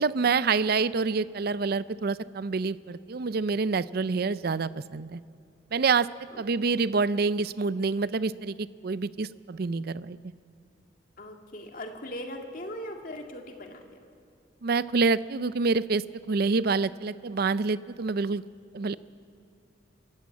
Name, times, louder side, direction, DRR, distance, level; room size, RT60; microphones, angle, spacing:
voice 1, 0.0-5.2 5.7-6.1 6.4-10.2 14.6-18.4 18.7-18.9, right 4 dB, 55° right, 17 dB, 0.5 m, -27 dB
voice 2, 11.2-13.8, left 1 dB, 45° left, 3 dB, 2.2 m, -39 dB
24.0 x 14.0 x 8.5 m, 2.5 s
head